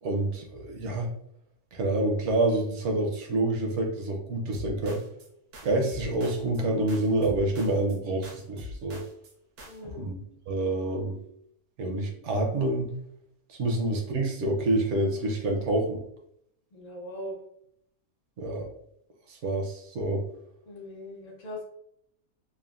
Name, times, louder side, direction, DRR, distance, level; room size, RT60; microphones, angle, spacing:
voice 1, 0.0-1.1 1.7-5.0 5.6-9.0 9.9-10.2 10.5-11.2 11.8-12.9 13.5-16.0 18.4-18.7 19.3-20.2, right 2 dB, 65° right, 1 dB, 0.8 m, -27 dB
sound 1, 4.5-5.3 5.5-6.6 6.9-9.3 9.6-9.9, left 2 dB, 80° right, 1.2 m, -43 dB
voice 2, 9.7-10.0 16.7-17.4 20.7-21.7, left 1 dB, 70° left, -1 dB, 0.4 m, -40 dB
3.4 x 2.1 x 2.3 m, 0.73 s
omnidirectional pair, 1.6 m